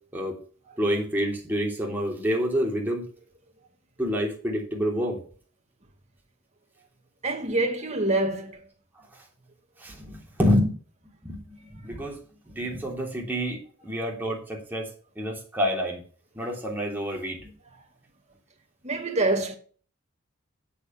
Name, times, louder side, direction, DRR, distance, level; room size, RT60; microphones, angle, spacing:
voice 1, 0.8-3.0 4.0-5.2 9.8-10.7 11.2-11.4 11.7-12.2 12.4-14.9 15.2-16.0 16.3-17.5, equal, 10° right, 3.2 m, -27 dB
voice 2, 7.2-8.6 18.8-19.6, right 2 dB, 35° right, 2.2 m, -25 dB
8.6 x 7.0 x 6.3 m
head